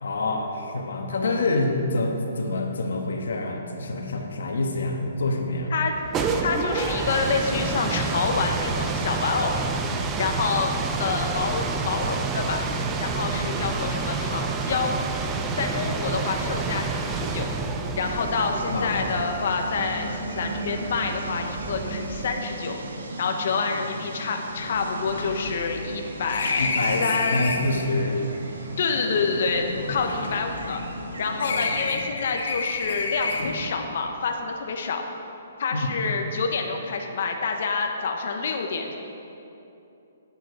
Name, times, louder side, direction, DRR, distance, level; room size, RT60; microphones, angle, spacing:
voice 1, 0.0-5.7 18.7-19.0 26.6-27.0 27.3-28.3 29.5-30.0 31.5-32.0 35.7-36.1, left 2 dB, 85° left, 2 dB, 1.4 m, -27 dB
sound 1, 5.8-22.6, right 4 dB, 15° right, 0.5 m, -29 dB
voice 2, 6.4-9.6 10.2-10.7 11.0-12.7 13.0-15.3 15.5-17.5 18.0-22.8 23.2-26.7 27.0-27.5 28.8-30.8 31.2-35.0 35.6-39.0, left 4 dB, 50° left, 3 dB, 0.9 m, -27 dB
sound 2, 18.0-31.9, right 2 dB, 85° right, 1.4 m, -36 dB
sound 3, 23.7-23.8 24.0-24.1 24.5-27.8 28.6-31.1 31.4-33.7, left 4 dB, 70° left, 1.2 m, -31 dB
9.1 x 8.7 x 4.8 m, 2.8 s
hypercardioid pair, 170°, 0 cm